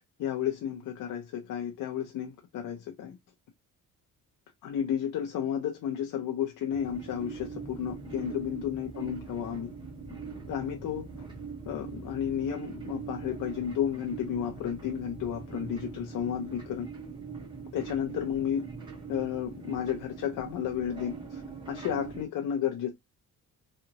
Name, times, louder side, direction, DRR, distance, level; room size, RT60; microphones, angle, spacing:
voice 1, 0.2-3.2 4.6-9.7 10.5-11.1 11.7-16.9 17.7-18.7 19.1-21.4 21.7-22.9, left 9 dB, 65° left, 0.7 m, -32 dB
sound 1, 6.7-22.2, right 5 dB, 15° right, 1.6 m, -42 dB
3.7 x 3.3 x 2.8 m
cardioid pair, 165°, 35 cm